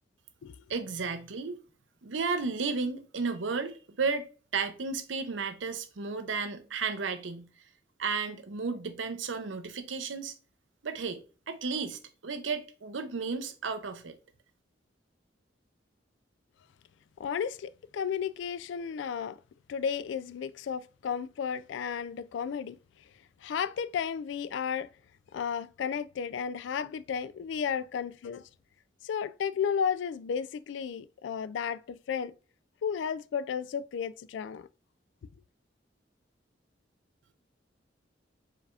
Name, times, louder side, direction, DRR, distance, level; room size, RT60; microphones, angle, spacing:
voice 1, 0.7-1.6 2.0-7.5 8.0-10.3 10.8-14.2, right 4 dB, 85° right, 0.7 m, -33 dB
voice 2, 17.2-19.4 19.7-22.8 23.4-24.9 25.3-28.5 29.0-32.3 32.8-34.7, left 7 dB, 75° left, 0.3 m, -33 dB
4.8 x 3.4 x 2.4 m
head